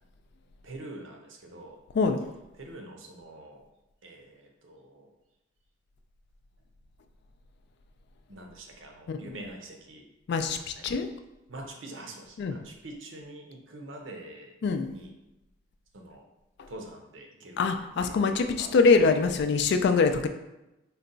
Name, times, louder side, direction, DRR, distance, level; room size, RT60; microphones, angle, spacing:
voice 1, 0.6-1.8 2.6-3.7 4.0-5.1 8.3-10.1 10.8-11.0 11.5-14.5 14.8-15.1 15.9-16.3 16.7-17.6 18.0-19.1, right 1 dB, 75° right, 2 dB, 0.7 m, -45 dB
voice 2, 10.3-11.1 12.4-12.6 14.6-14.9 16.6-16.7 17.6-20.3, left 4 dB, 60° left, 8 dB, 0.3 m, -24 dB
3.9 x 2.2 x 3.8 m, 0.96 s
head